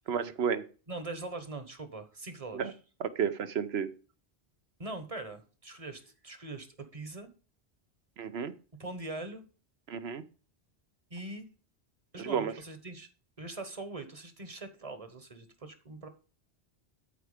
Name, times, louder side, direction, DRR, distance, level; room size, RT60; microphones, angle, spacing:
voice 1, 0.1-0.6 2.5-2.7 3.0-3.9 8.2-8.5 9.9-10.2 12.2-12.5, right 7 dB, 70° right, 12 dB, 1.1 m, -31 dB
voice 2, 0.9-2.8 4.8-7.3 8.8-9.4 11.1-11.5 12.1-13.1 13.4-16.1, right 2 dB, 35° right, 9 dB, 1.2 m, -42 dB
12.5 x 4.7 x 5.0 m, 0.36 s
omnidirectional pair, 1.1 m